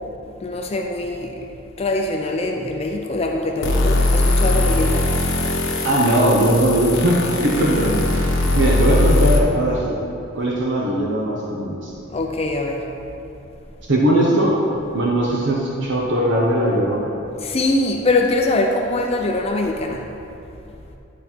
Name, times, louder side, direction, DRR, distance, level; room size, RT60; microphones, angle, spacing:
voice 1, 0.4-1.5 1.8-5.1 12.1-12.9 17.4-20.1, left 2 dB, 30° left, 2 dB, 0.5 m, -23 dB
sound 1, 3.6-9.4, left 2 dB, 80° left, 1.0 m, -20 dB
voice 2, 5.8-8.3 8.5-10.0 10.4-11.9 13.9-14.6 14.9-17.1, right 1 dB, 65° right, -3 dB, 0.9 m, -19 dB
11.0 x 4.1 x 4.4 m, 2.7 s
head